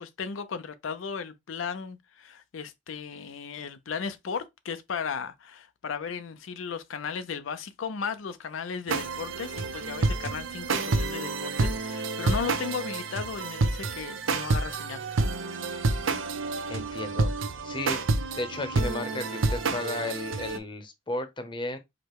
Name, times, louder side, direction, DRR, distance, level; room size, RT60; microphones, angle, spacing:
voice 1, 0.0-15.0 15.3-15.9, left 6 dB, 80° left, 0.5 m, -36 dB
sound 1, 8.9-20.6, right 3 dB, 80° right, 0.6 m, -29 dB
voice 2, 16.7-17.3 17.6-18.1 18.3-21.8, left 2 dB, 25° left, 0.8 m, -34 dB
4.9 x 2.2 x 4.5 m
head